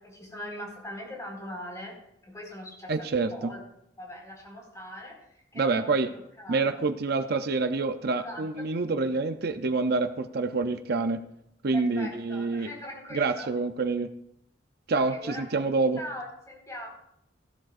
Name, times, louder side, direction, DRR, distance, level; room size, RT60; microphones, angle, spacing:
voice 1, 0.0-2.0 2.2-3.6 4.0-6.8 8.2-8.7 11.7-13.5 14.9-15.6 16.0-16.9, equal, 15° left, -3 dB, 4.8 m, -41 dB
voice 2, 2.9-3.5 5.6-6.1 6.5-11.2 11.6-12.7 13.1-14.1 14.9-16.0, right 3 dB, 55° right, 9 dB, 0.6 m, -27 dB
16.0 x 12.0 x 2.5 m, 0.75 s
head